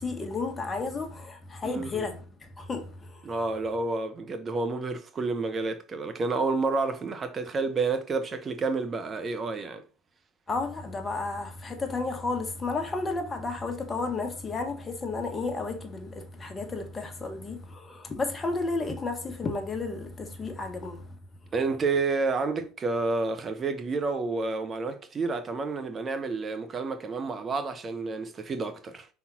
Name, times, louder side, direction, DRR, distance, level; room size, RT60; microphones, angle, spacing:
voice 1, 0.0-3.3 10.5-21.1, left 3 dB, 25° left, 1.6 m, -32 dB
voice 2, 1.6-2.0 3.2-9.8 21.5-29.1, right 3 dB, 30° right, 0.9 m, -30 dB
5.6 x 4.3 x 4.2 m
hypercardioid pair, 70°, 0 cm